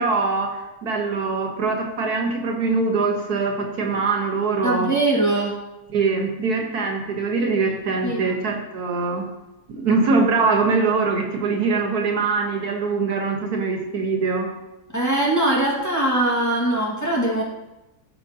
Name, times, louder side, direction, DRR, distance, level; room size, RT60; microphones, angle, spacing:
voice 1, 0.0-4.9 5.9-9.2 9.7-14.5, right 4 dB, 80° right, 2 dB, 1.7 m, -23 dB
voice 2, 4.6-5.5 8.0-8.4 14.9-17.4, right 1 dB, 10° left, -5 dB, 1.7 m, -21 dB
14.5 x 5.5 x 2.8 m, 1.0 s
omnidirectional pair, 1.6 m